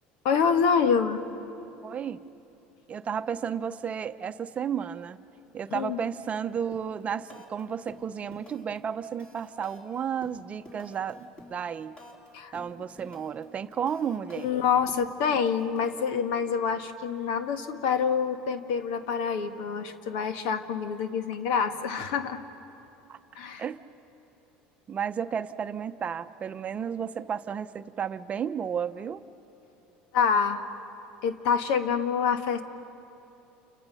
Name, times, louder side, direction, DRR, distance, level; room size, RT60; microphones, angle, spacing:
voice 1, 0.2-1.2 5.7-6.0 12.3-12.5 14.3-22.4 23.3-23.6 30.1-30.6 31.2-32.6, left 6 dB, 80° left, 8 dB, 1.5 m, -26 dB
voice 2, 1.8-2.2 2.9-5.2 5.5-12.0 12.5-14.5 23.1-23.2 23.6-23.8 24.9-29.2, right 7 dB, 30° right, 10 dB, 0.7 m, -32 dB
sound 1, 6.7-7.0 7.3-7.6 7.9-8.8 9.0-12.3 12.5-13.4 13.7-15.9, left 1 dB, 25° left, 3.8 m, -49 dB
29.5 x 29.0 x 5.6 m, 2.9 s
supercardioid pair, 110°, 4 cm